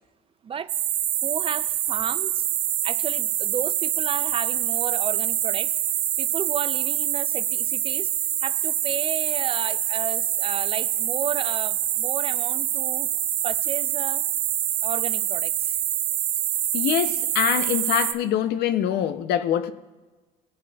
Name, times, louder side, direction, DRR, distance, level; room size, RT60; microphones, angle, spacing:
sound 1, 0.7-18.1, right 12 dB, 70° right, 0.7 m, -25 dB
voice 1, 1.2-2.5 2.8-5.8 6.2-8.1 8.4-13.1 13.4-14.2 14.8-15.8, right 7 dB, 35° right, 0.4 m, -33 dB
voice 2, 16.7-19.7, left 10 dB, 75° left, 0.6 m, -24 dB
18.5 x 7.5 x 2.3 m
cardioid pair, 110°, 17 cm